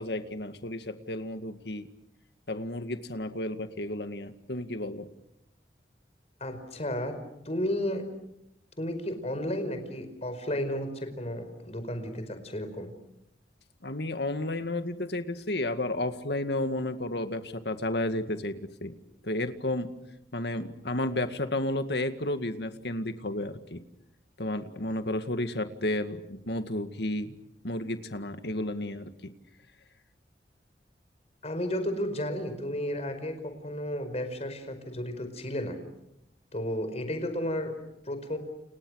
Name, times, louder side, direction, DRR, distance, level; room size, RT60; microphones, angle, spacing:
voice 1, 0.0-1.9 2.5-5.1 13.8-18.9 19.2-19.9 20.3-23.8 24.4-27.4 27.6-29.3, left 1 dB, 70° left, 8 dB, 2.1 m, -32 dB
voice 2, 6.4-7.2 7.4-8.0 8.8-12.9 31.4-35.8 36.5-37.7 38.1-38.4, left 1 dB, 40° left, 8 dB, 5.1 m, -33 dB
30.0 x 30.0 x 6.5 m, 0.82 s
head